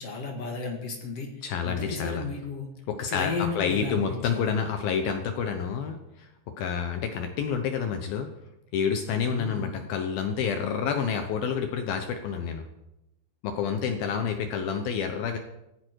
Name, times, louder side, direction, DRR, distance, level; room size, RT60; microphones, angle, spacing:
voice 1, 0.0-2.7 3.1-4.5 9.3-9.9 14.0-14.5, left 4 dB, 45° left, 2 dB, 2.2 m, -34 dB
voice 2, 1.4-2.2 2.9-6.3 6.6-8.3 8.7-12.6 13.4-15.4, left 7 dB, 70° left, 6 dB, 2.4 m, -29 dB
17.0 x 14.5 x 4.7 m, 0.88 s
omnidirectional pair, 5.2 m